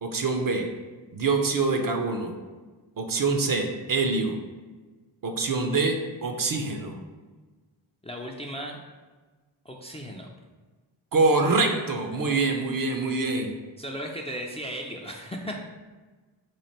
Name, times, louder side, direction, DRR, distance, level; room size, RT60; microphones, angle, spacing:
voice 1, 0.0-0.7 1.1-2.3 3.0-4.4 5.2-6.0 6.2-6.9 11.1-13.5, right 3 dB, 45° right, 4 dB, 0.6 m, -25 dB
voice 2, 8.0-8.8 9.6-10.3 12.3-12.6 12.9-13.0 13.8-15.6, equal, 15° left, 0 dB, 0.3 m, -36 dB
3.1 x 2.5 x 4.2 m, 1.3 s
cardioid pair, 55°, 45 cm